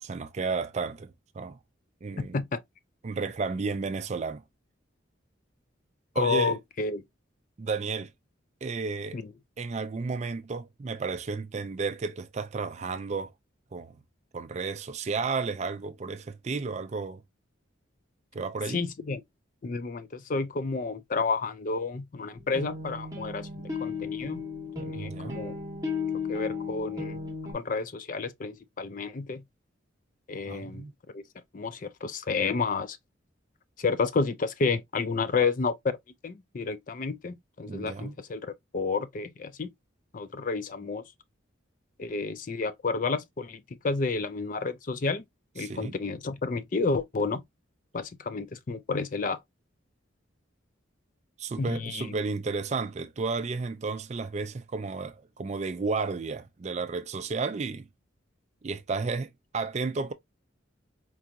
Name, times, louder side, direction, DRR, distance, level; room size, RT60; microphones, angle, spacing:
voice 1, 0.0-1.6 2.0-2.4 3.0-4.4 6.2-6.6 7.6-8.1 8.6-9.2 9.6-13.3 13.7-13.9 14.3-17.2 18.3-18.8 24.9-25.4 30.5-30.9 37.7-38.2 45.6-45.9 51.4-57.9 58.6-60.1, right 4 dB, 35° right, 0.4 m, -32 dB
voice 2, 2.2-2.6 6.2-7.0 9.1-9.3 18.7-19.2 19.6-24.4 24.8-25.6 26.3-27.2 27.5-29.4 30.3-30.8 31.1-31.2 31.5-33.0 33.8-36.0 36.2-39.7 40.1-41.0 42.0-45.2 45.6-47.4 47.9-49.4 51.6-52.1, left 4 dB, 40° left, 0.4 m, -30 dB
sound 1, 22.3-27.5, left 5 dB, 20° right, 1.3 m, -35 dB
4.5 x 2.9 x 2.4 m
head